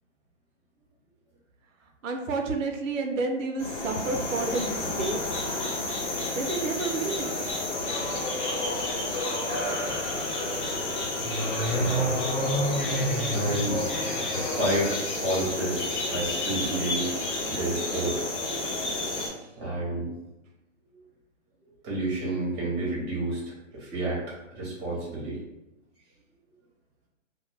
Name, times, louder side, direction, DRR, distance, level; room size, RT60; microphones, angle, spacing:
voice 1, 2.0-5.2 6.4-7.5, right 3 dB, 80° right, 3 dB, 0.6 m, -30 dB
sound 1, 3.6-19.3, left 2 dB, 65° left, 0.9 m, -31 dB
sound 2, 7.2-15.0, left 1 dB, 40° left, 0.5 m, -35 dB
sound 3, 11.2-14.5, right 1 dB, 20° left, 0.9 m, -29 dB
voice 2, 11.7-12.1 13.3-13.8 14.3-14.9 15.2-17.2 17.5-18.2 19.3-20.1 20.9-21.0 21.8-25.4, right 1 dB, 15° right, -5 dB, 0.6 m, -30 dB
2.2 x 2.1 x 3.1 m, 0.95 s
hypercardioid pair, 145°, 38 cm